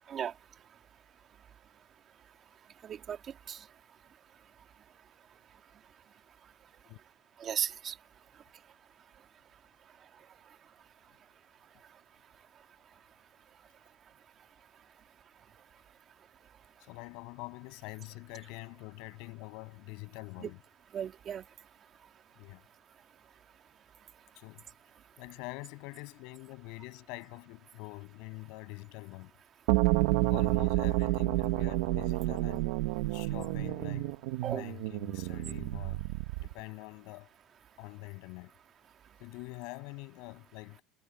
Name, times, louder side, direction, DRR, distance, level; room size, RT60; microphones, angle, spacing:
voice 1, 2.8-3.2 3.5-3.6 7.4-7.9 20.4-20.5 20.9-21.4 34.4-34.6, right 9 dB, 30° right, 2.7 m, -35 dB
voice 2, 16.9-20.6 22.4-22.6 24.4-24.6 25.2-29.3 30.3-32.7 33.1-34.2 34.5-36.0 36.4-37.3 37.8-38.5 39.2-40.8, left 28 dB, 60° left, 7.2 m, -45 dB
sound 1, 29.7-36.6, right 20 dB, 75° right, 1.1 m, -30 dB
cardioid pair, 165°, 0 cm